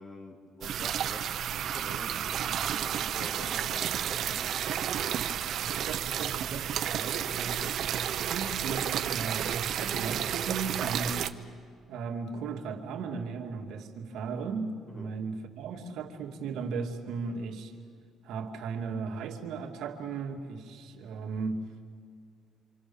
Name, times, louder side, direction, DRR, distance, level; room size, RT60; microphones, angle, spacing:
voice 1, 0.0-4.5 14.9-15.2, left 1 dB, 20° left, 4 dB, 2.4 m, -46 dB
sound 1, 0.6-11.3, right 9 dB, 55° right, 0.8 m, -31 dB
voice 2, 5.6-7.9 8.3-11.2 11.9-17.7 18.2-21.7, right 5 dB, 75° right, 0 dB, 2.5 m, -36 dB
27.0 x 27.0 x 7.1 m, 2.1 s
cardioid pair, 160°, 0 cm